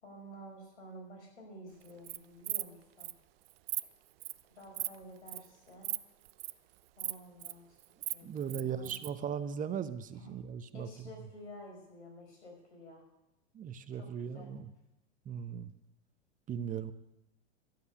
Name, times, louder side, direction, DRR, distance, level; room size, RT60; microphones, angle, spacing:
voice 1, 0.0-3.1 4.5-6.0 7.0-7.8 8.1-8.9 10.2-10.3 10.7-13.0 13.9-14.5, equal, 85° left, 1 dB, 5.3 m, -51 dB
Insect, 1.8-2.2 2.4-2.7 3.0-3.1 3.5-3.8 4.2-4.4 4.7-4.9 5.3-5.5 5.8-6.0 6.2-6.5 7.0-7.5 7.8-9.1, right 18 dB, 60° right, 0.7 m, -37 dB
voice 2, 8.2-10.9 13.5-14.7 15.2-15.7 16.5-16.9, right 8 dB, 25° right, 12 dB, 0.9 m, -38 dB
12.0 x 8.3 x 9.3 m, 0.91 s
hypercardioid pair, 110°, 34 cm